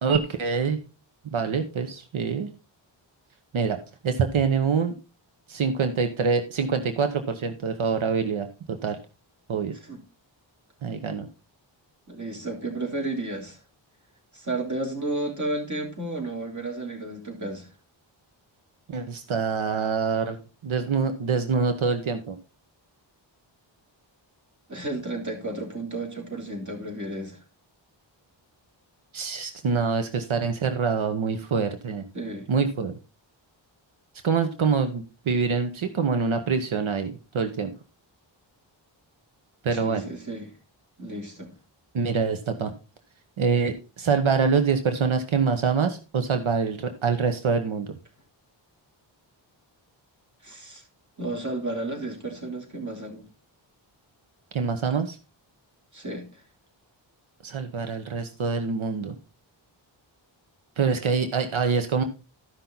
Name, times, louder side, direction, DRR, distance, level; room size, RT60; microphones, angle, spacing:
voice 1, 0.0-0.8 1.3-2.5 3.5-3.8 4.0-4.9 5.5-9.0 9.5-9.7 10.8-11.3 18.9-20.4 20.6-22.4 29.1-32.1 32.5-33.0 34.2-37.7 39.6-40.0 41.9-42.7 43.4-47.9 54.5-55.2 57.4-59.1 60.8-62.0, right 5 dB, 80° right, 7 dB, 1.1 m, -25 dB
voice 2, 12.1-13.6 14.3-17.7 24.7-27.4 32.1-32.5 39.7-40.5 41.0-41.5 50.4-50.8 51.2-53.3 55.9-56.4, right 2 dB, 40° right, 0 dB, 3.5 m, -32 dB
13.0 x 5.8 x 3.9 m, 0.31 s
wide cardioid pair, 110°, 47 cm